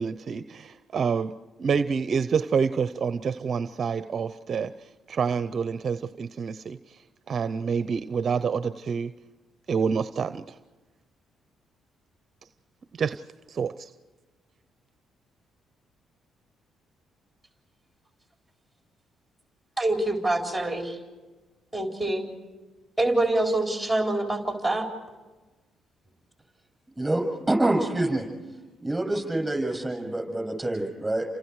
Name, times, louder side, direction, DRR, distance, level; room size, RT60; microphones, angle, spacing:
voice 1, 0.0-7.0 7.3-9.1 9.7-10.6 12.9-13.2 13.5-13.9, right 6 dB, 50° right, 12 dB, 0.6 m, -28 dB
voice 2, 19.8-21.0 21.7-22.2 23.0-24.9, right 2 dB, 5° left, 1 dB, 4.2 m, -25 dB
voice 3, 27.0-28.3 28.8-31.3, right 1 dB, 15° right, 2 dB, 7.7 m, -26 dB
29.5 x 26.0 x 4.8 m, 1.3 s
cardioid pair, 90°, 0 cm